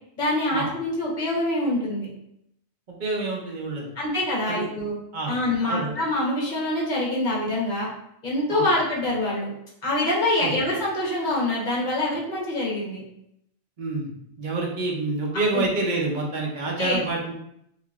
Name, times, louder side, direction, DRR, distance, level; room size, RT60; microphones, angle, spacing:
voice 1, 0.2-2.1 3.9-5.0 5.3-7.9 8.2-9.5 9.8-13.0 15.5-15.7 16.8-17.1, left 1 dB, 40° left, -5 dB, 1.0 m, -25 dB
voice 2, 2.9-3.9 4.5-4.6 5.1-5.4 5.7-5.9 8.5-8.6 10.4-10.5 13.8-14.1 14.4-17.3, right 3 dB, 50° right, -1 dB, 0.6 m, -27 dB
3.2 x 2.9 x 2.4 m, 0.76 s
omnidirectional pair, 1.4 m